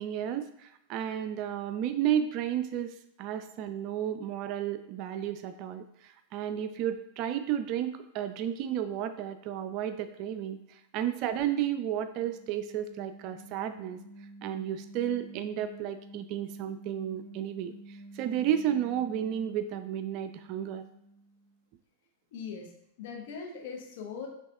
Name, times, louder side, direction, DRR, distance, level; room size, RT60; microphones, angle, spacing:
voice 1, 0.0-14.0 14.4-20.8, right 10 dB, 50° right, 10 dB, 0.4 m, -32 dB
sound 1, 11.4-21.6, right 2 dB, 20° left, 1.2 m, -50 dB
voice 2, 22.3-22.7 23.0-24.3, left 6 dB, 65° left, 1 dB, 1.0 m, -40 dB
6.0 x 3.0 x 2.3 m, 0.78 s
hypercardioid pair, 95°, 0 cm